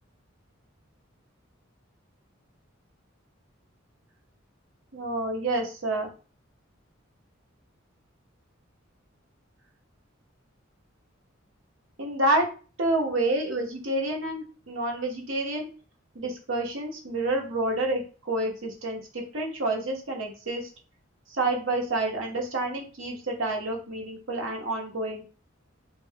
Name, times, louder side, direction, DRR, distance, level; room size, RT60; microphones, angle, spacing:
voice 1, 4.9-6.1 12.0-12.5 12.8-15.7 16.1-20.7 21.4-25.2, right 2 dB, 70° right, 0 dB, 1.0 m, -28 dB
3.1 x 2.2 x 2.8 m, 0.36 s
head